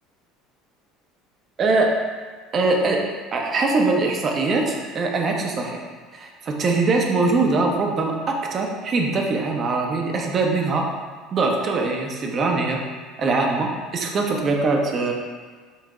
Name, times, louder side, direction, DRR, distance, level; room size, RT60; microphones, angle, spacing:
voice 1, 1.6-1.9 2.5-3.0 3.3-5.8 6.1-10.9 11.3-12.8 13.2-15.1, right 3 dB, 40° right, 1 dB, 0.6 m, -22 dB
5.4 x 2.7 x 2.5 m, 1.5 s
figure-of-eight pair, 65°, 0 cm